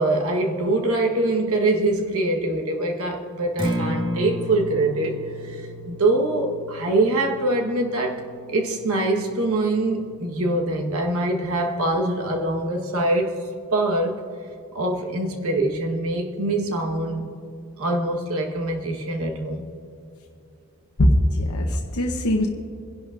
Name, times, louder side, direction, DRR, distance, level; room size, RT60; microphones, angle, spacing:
voice 1, 0.0-5.2 5.5-5.6 5.9-13.4 13.7-14.2 14.7-17.3 17.8-19.7, right 2 dB, 70° right, 1.2 m, -24 dB
Acoustic guitar, 3.6-11.6, equal, 20° right, 1.5 m, -34 dB
voice 2, 21.1-22.5, left 1 dB, 75° left, 0.9 m, -22 dB
28.5 x 11.0 x 2.5 m
head